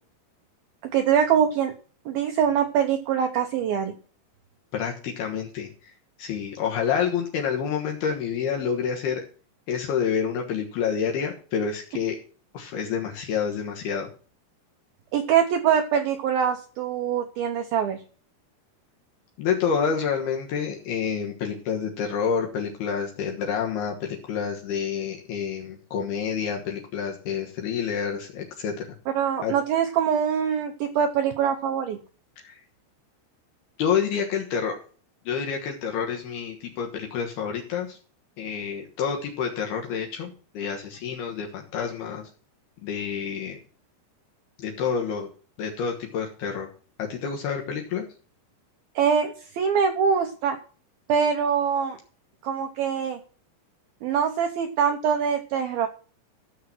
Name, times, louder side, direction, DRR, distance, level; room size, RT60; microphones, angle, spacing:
voice 1, 0.9-1.7 2.1-3.9 15.1-18.0 29.1-32.0 49.0-50.6 51.1-52.0 52.4-53.2 54.0-55.9, right 7 dB, 75° right, 5 dB, 2.3 m, -23 dB
voice 2, 4.7-5.9 6.2-9.2 9.7-12.2 12.5-14.1 19.4-28.9 29.4-29.5 32.4-32.6 33.8-34.8 35.3-38.0 38.4-42.2 42.8-43.6 44.6-45.3 45.6-46.7 47.0-48.0, left 7 dB, 70° left, 1 dB, 3.1 m, -28 dB
14.0 x 6.6 x 6.0 m, 0.40 s
omnidirectional pair, 5.1 m